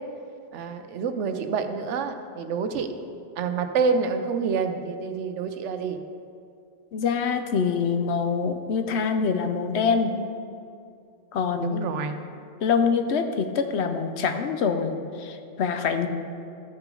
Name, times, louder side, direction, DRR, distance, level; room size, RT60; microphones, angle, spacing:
voice 1, 0.5-2.9 3.4-6.0 11.6-12.2, right 5 dB, 80° right, 8 dB, 1.0 m, -27 dB
voice 2, 6.9-10.2 11.3-11.8 12.6-16.1, left 5 dB, 70° left, 7 dB, 0.9 m, -25 dB
13.5 x 6.0 x 3.8 m, 2.5 s
omnidirectional pair, 1.2 m